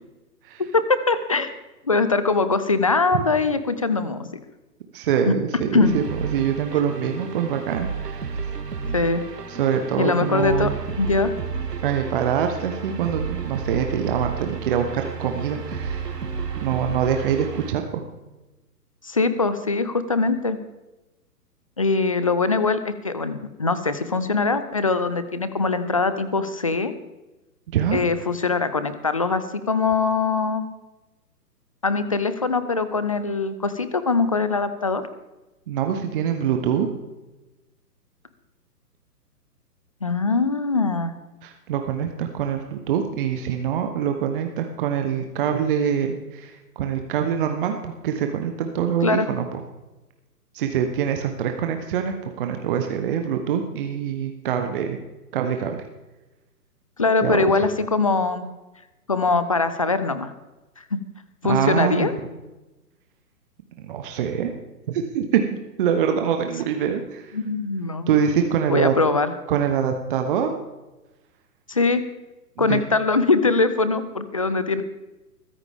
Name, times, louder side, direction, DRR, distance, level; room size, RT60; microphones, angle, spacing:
voice 1, 0.7-1.5 1.8-4.3 5.7-5.9 8.9-9.2 10.0-10.7 11.0-11.3 19.0-20.6 21.8-26.9 27.9-30.7 31.8-35.0 40.0-41.1 49.0-49.3 57.0-58.4 59.1-60.3 60.8-60.9 61.4-62.1 67.3-68.1 68.7-69.3 71.7-72.0 72.6-74.8, left 4 dB, 25° left, 12 dB, 0.4 m, -22 dB
voice 2, 4.9-8.4 9.5-10.7 11.8-16.1 16.6-18.0 27.7-28.0 35.7-36.9 41.4-49.6 50.5-55.0 55.3-55.8 57.2-57.4 61.4-62.1 63.8-64.5 64.9-65.4 65.8-67.4 68.1-68.9 69.5-70.5 72.6-72.8, right 8 dB, 35° right, 5 dB, 1.1 m, -24 dB
sound 1, 5.8-17.7, right 6 dB, 75° right, 1.7 m, -32 dB
22.0 x 10.0 x 3.6 m, 1.1 s
figure-of-eight pair, 125°, 49 cm